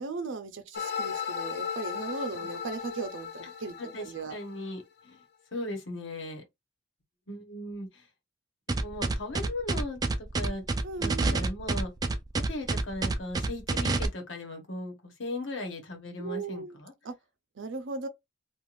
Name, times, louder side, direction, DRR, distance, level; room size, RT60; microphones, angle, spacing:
voice 1, 0.0-4.4 10.8-11.5 16.2-16.8 17.0-17.1 17.6-18.1, right 4 dB, 80° right, 0.6 m, -37 dB
sound 1, 0.7-4.7, left 7 dB, 60° left, 0.5 m, -36 dB
voice 2, 3.8-5.2 5.5-6.4 7.3-8.0 8.7-10.6 11.0-11.9 12.5-16.9, left 1 dB, 80° left, 1.1 m, -38 dB
sound 2, 8.7-14.1, right 3 dB, 20° right, 0.3 m, -28 dB
2.5 x 2.5 x 3.0 m
head